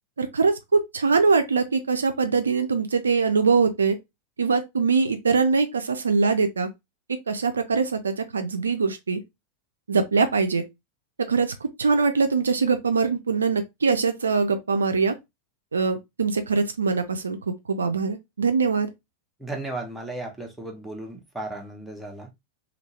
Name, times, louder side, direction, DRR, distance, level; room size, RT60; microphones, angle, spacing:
voice 1, 0.2-4.0 4.4-6.7 7.1-9.2 9.9-10.6 11.3-15.2 15.7-17.4 17.7-18.9, right 4 dB, 75° right, 0.4 m, -23 dB
voice 2, 19.4-22.3, right 2 dB, ahead, 0.8 m, -35 dB
2.8 x 2.7 x 2.8 m
figure-of-eight pair, 90°, 0 cm